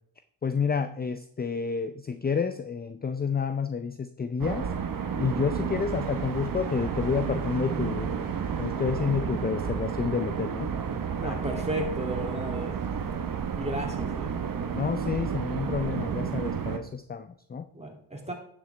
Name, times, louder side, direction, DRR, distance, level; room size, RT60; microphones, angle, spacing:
voice 1, 0.4-4.7 5.2-8.2 8.6-10.7 11.2-11.4 14.7-17.7, left 6 dB, 20° left, 11 dB, 0.6 m, -29 dB
sound 1, 4.4-16.8, right 7 dB, 45° right, 1.2 m, -31 dB
voice 2, 11.2-12.8 13.5-14.3 17.7-18.3, right 1 dB, 15° right, 2 dB, 2.7 m, -34 dB
10.5 x 7.2 x 3.4 m, 0.67 s
supercardioid pair, 50°, 46 cm